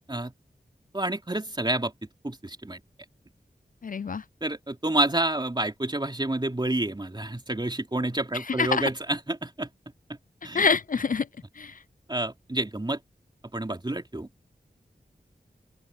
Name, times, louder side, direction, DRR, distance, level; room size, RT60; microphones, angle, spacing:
voice 1, 0.9-1.9 2.2-2.8 4.4-9.7 10.4-10.7 12.1-13.0 13.5-14.3, right 1 dB, 25° right, 3.0 m, -29 dB
voice 2, 3.8-4.2 8.3-8.9 10.5-11.3 11.6-11.8, left 5 dB, 55° left, 0.4 m, -26 dB
open air
wide cardioid pair, 60°, 17 cm